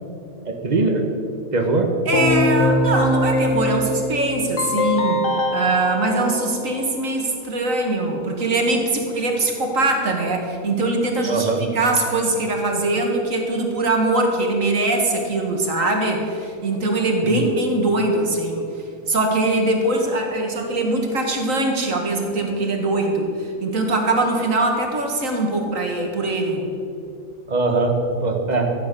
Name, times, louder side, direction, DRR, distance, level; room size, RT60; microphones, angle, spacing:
voice 1, 0.4-1.0 1.5-1.9 11.3-11.6 17.2-17.4 27.5-28.0 28.2-28.7, right 3 dB, 30° right, 3 dB, 1.4 m, -21 dB
Keyboard (musical), 2.1-7.1, left 1 dB, 50° left, 1.8 m, -22 dB
voice 2, 2.1-18.7 19.1-26.6, right 2 dB, 55° right, 2 dB, 2.2 m, -22 dB
14.5 x 8.6 x 6.9 m, 2.6 s
omnidirectional pair, 1.6 m